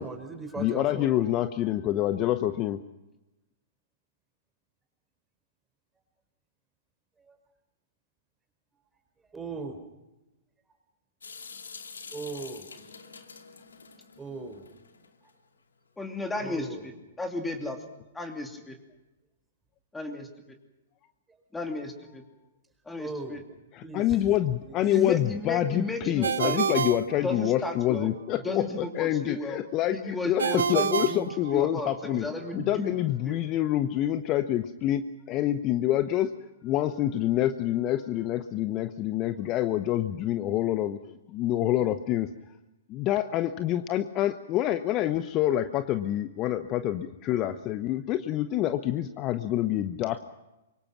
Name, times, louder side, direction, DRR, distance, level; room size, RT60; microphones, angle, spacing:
voice 1, 0.0-1.4 7.2-7.4 9.3-9.8 12.1-12.6 14.2-14.6 15.2-15.3 16.4-16.9 21.3-21.4 23.0-23.4 23.8-24.0 24.6-24.8, right 3 dB, 10° right, 5 dB, 4.5 m, -39 dB
voice 2, 0.6-2.8 23.7-32.3 32.6-36.3 36.6-41.0 41.3-42.3 42.9-50.2, left 13 dB, 30° left, 11 dB, 0.9 m, -27 dB
Water tap faucet / Sink (filling or washing) / Drip, 11.2-15.3, left 5 dB, 75° left, 2.4 m, -46 dB
voice 3, 16.0-16.9 17.2-17.8 18.1-18.8 19.9-20.3 21.5-22.2 22.9-23.4 24.9-26.7 27.1-28.1 28.4-29.6 29.9-32.9 33.3-33.4, left 2 dB, 10° left, 4 dB, 2.8 m, -34 dB
Ringtone, 26.2-27.9 30.4-32.1, right 7 dB, 70° right, 0.7 m, -29 dB
25.5 x 23.5 x 6.1 m, 0.99 s
figure-of-eight pair, 115°, 0 cm